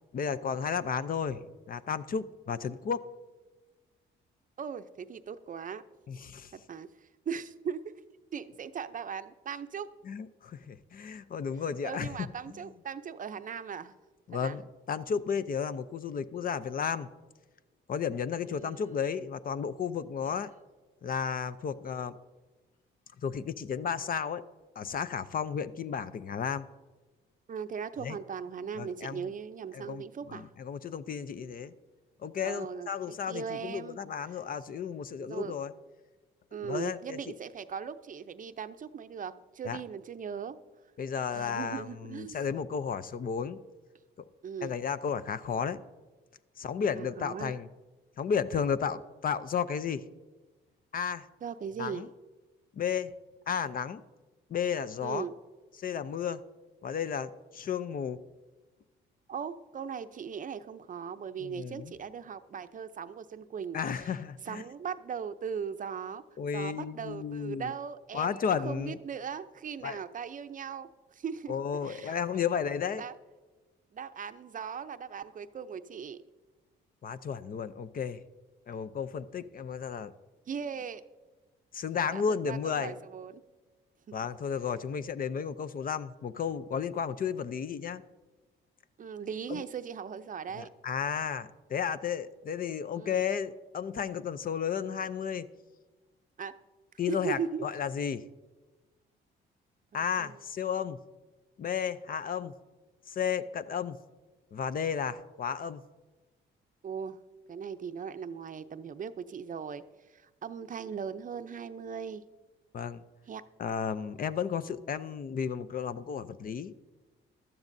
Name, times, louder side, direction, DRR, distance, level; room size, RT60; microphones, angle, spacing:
voice 1, 0.1-1.4 1.7-3.0 6.1-6.5 10.1-12.5 14.3-14.6 14.9-17.1 17.9-20.5 21.0-22.2 23.2-24.4 24.8-26.7 28.0-28.2 28.8-29.3 29.7-31.7 32.2-35.7 36.6-37.3 39.6-39.8 41.0-43.6 44.6-45.8 46.6-47.7 48.2-50.0 50.9-51.3 51.8-52.1 52.8-53.1 53.5-54.0 54.5-55.3 55.8-56.4 56.8-58.2 61.4-61.9 63.7-64.6 66.4-67.7 68.1-69.0 69.8-70.0 71.5-73.0 77.0-78.2 78.7-80.1 81.7-82.9 84.1-88.0 89.5-89.6 90.6-95.5 97.0-98.2 99.9-101.0 101.6-102.5 103.1-104.0 104.5-105.8 112.7-113.0 113.6-116.7, left 7 dB, 45° left, 14 dB, 0.5 m, -33 dB
voice 2, 4.6-5.8 6.5-7.9 8.3-9.9 11.8-13.9 14.3-14.6 18.4-18.9 20.3-20.4 27.5-30.5 32.4-34.0 35.2-35.5 36.5-40.6 41.3-42.4 44.4-44.8 46.9-47.5 51.4-52.1 55.0-55.3 59.3-64.1 64.4-66.2 66.5-71.5 71.8-72.2 73.0-73.1 73.9-76.2 80.5-81.0 82.1-83.4 89.0-90.7 92.9-93.2 96.4-96.5 97.1-97.6 100.2-100.4 106.8-107.2 107.5-109.8 110.1-112.2 113.3-113.4, right 7 dB, 40° right, 11 dB, 0.6 m, -39 dB
15.5 x 12.0 x 2.6 m, 1.2 s
cardioid pair, 90°, 20 cm